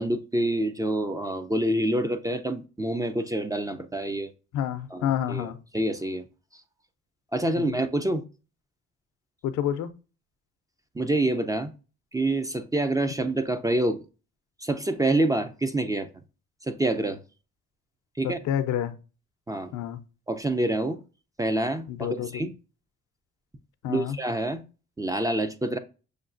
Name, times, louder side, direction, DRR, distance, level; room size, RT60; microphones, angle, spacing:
voice 1, 0.0-4.3 4.9-6.2 7.3-8.2 11.0-11.7 12.1-14.0 14.6-16.1 16.7-17.2 18.2-18.4 19.5-19.7 20.3-21.0 21.4-22.5 23.9-24.6 25.0-25.8, right 1 dB, 10° right, 0.4 m, -27 dB
voice 2, 4.5-5.6 7.6-7.8 9.4-9.9 18.2-18.9 19.7-20.0 21.9-22.4 23.8-24.2, left 10 dB, 80° left, 0.5 m, -29 dB
6.5 x 2.3 x 2.4 m
cardioid pair, 90°, 30 cm